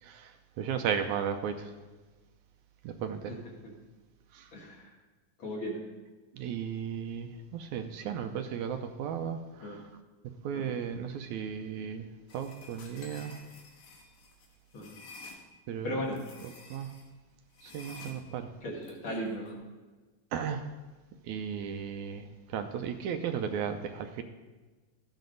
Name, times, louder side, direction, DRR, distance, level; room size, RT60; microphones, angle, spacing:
voice 1, 0.0-1.7 2.8-3.4 4.3-4.5 6.3-9.9 10.4-13.4 15.7-16.1 16.4-16.9 17.6-18.5 20.3-20.7 21.2-24.2, right 7 dB, 80° right, 7 dB, 2.0 m, -35 dB
voice 2, 4.5-4.9 5.4-5.8 9.6-9.8 10.5-10.7 14.7-15.0 15.8-16.2 18.6-19.6, equal, 50° left, -2 dB, 2.2 m, -37 dB
sound 1, 12.3-15.4 16.1-17.1 17.5-19.5, left 3 dB, 70° left, 2.6 m, -50 dB
14.0 x 9.4 x 3.9 m, 1.3 s
omnidirectional pair, 3.5 m